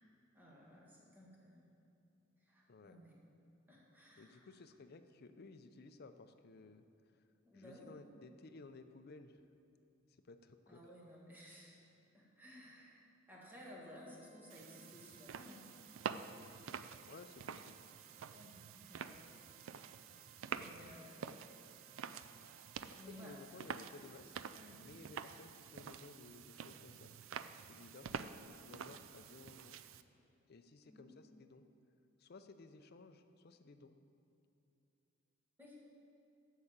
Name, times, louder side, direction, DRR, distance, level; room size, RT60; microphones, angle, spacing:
voice 1, 0.3-1.7 2.4-3.1 3.7-4.5 7.4-8.0 10.7-11.8 12.1-15.7 18.3-18.6 18.9-19.1 20.5-21.4 22.9-23.3 24.5-24.8 30.8-31.1 35.6-35.8, left 1 dB, 10° right, -4 dB, 1.8 m, -57 dB
voice 2, 4.2-6.9 7.5-9.4 10.2-10.8 17.1-17.8 22.9-24.4 24.8-27.1 27.6-29.8 30.5-31.6 32.2-33.9, left 3 dB, 50° left, 9 dB, 0.5 m, -57 dB
Organ, 13.3-24.0, right 4 dB, 45° right, 1.3 m, -69 dB
sound 1, 14.5-30.0, right 7 dB, 75° right, 0.4 m, -48 dB
8.1 x 6.5 x 7.3 m, 2.8 s
head